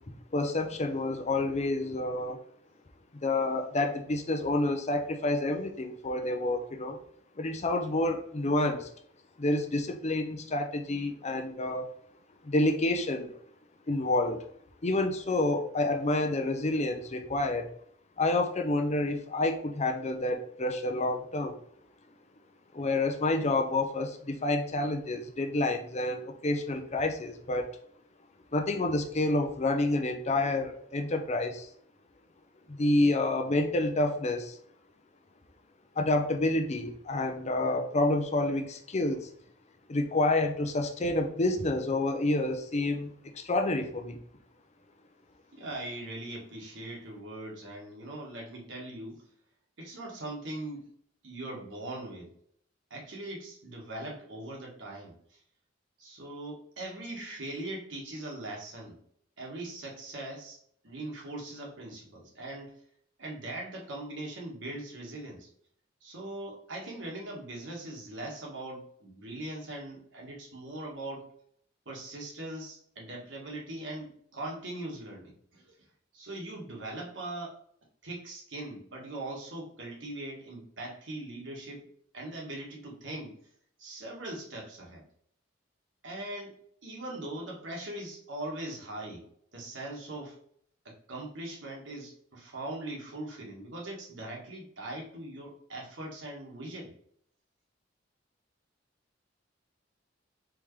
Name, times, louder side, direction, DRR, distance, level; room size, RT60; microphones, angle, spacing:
voice 1, 0.1-2.4 3.2-7.0 7.4-8.9 9.4-11.9 12.4-13.4 13.9-14.4 14.8-17.7 18.2-21.5 22.7-27.7 28.5-31.7 32.7-34.6 36.0-39.3 39.9-44.2, left 2 dB, 35° left, 5 dB, 0.6 m, -29 dB
voice 2, 45.5-49.2 49.8-50.9 51.2-52.3 52.9-55.4 56.0-59.0 59.4-62.8 63.2-65.5 66.0-71.3 71.8-75.8 76.1-77.6 78.0-81.8 82.1-83.4 83.8-85.0 86.0-89.3 89.5-90.4 90.8-96.9, right 1 dB, 70° right, -2 dB, 1.5 m, -41 dB
4.5 x 3.7 x 3.2 m, 0.65 s
head